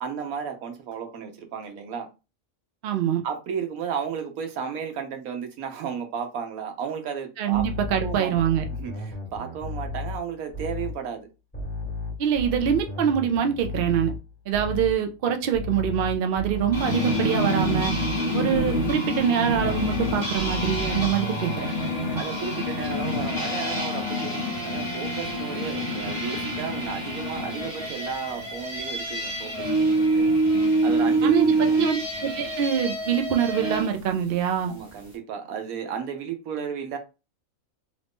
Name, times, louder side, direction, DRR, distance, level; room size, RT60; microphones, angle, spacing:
voice 1, 0.0-2.1 3.2-7.6 8.0-8.3 8.7-11.3 21.8-30.2 30.8-31.8 34.7-37.0, right 7 dB, 85° right, 1.2 m, -34 dB
voice 2, 2.8-3.2 7.4-8.6 12.2-14.1 14.5-18.0 18.3-21.7 31.2-34.7, right 8 dB, 60° right, 0.6 m, -24 dB
sound 1, 7.5-11.0 11.5-15.1 15.5-19.1 19.5-21.6, left 2 dB, 10° left, 1.4 m, -34 dB
sound 2, 16.7-33.9, right 1 dB, 15° right, 1.1 m, -26 dB
3.1 x 2.6 x 3.4 m
omnidirectional pair, 1.5 m